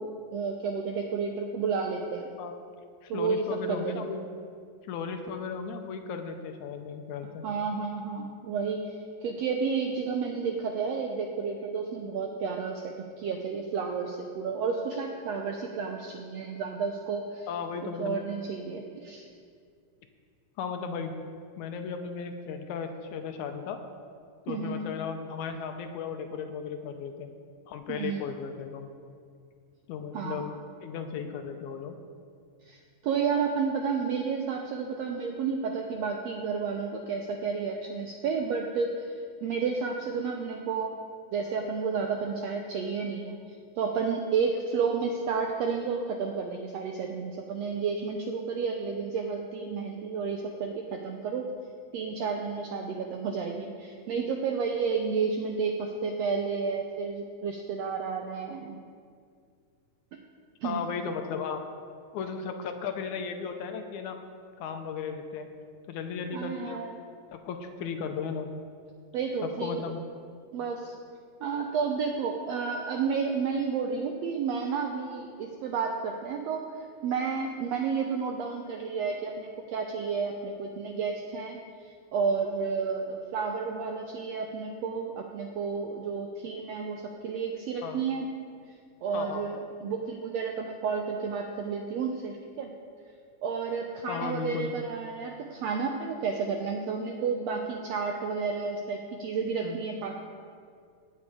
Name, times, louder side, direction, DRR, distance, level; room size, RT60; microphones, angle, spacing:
voice 1, 0.0-2.3 3.1-4.0 7.4-17.5 18.0-19.3 24.5-24.9 27.9-28.2 30.1-30.5 32.7-41.0 41.3-43.3 43.8-51.5 51.9-58.8 60.6-60.8 66.3-66.9 69.1-69.8 70.5-70.9 71.4-81.6 82.1-88.3 89.0-92.7 93.4-100.1, right 5 dB, 80° right, 3 dB, 1.5 m, -31 dB
voice 2, 3.0-4.3 4.8-7.5 17.5-18.2 20.6-21.1 21.6-23.8 24.5-27.3 27.7-28.9 29.9-30.5 30.8-32.0 60.6-61.6 62.1-64.2 64.6-65.5 65.9-66.8 67.3-68.5 69.4-70.0 87.8-88.0 89.1-89.4 94.1-94.7 99.6-99.8, left 6 dB, 75° left, 6 dB, 2.0 m, -35 dB
16.5 x 7.6 x 4.9 m, 2.2 s
omnidirectional pair, 3.8 m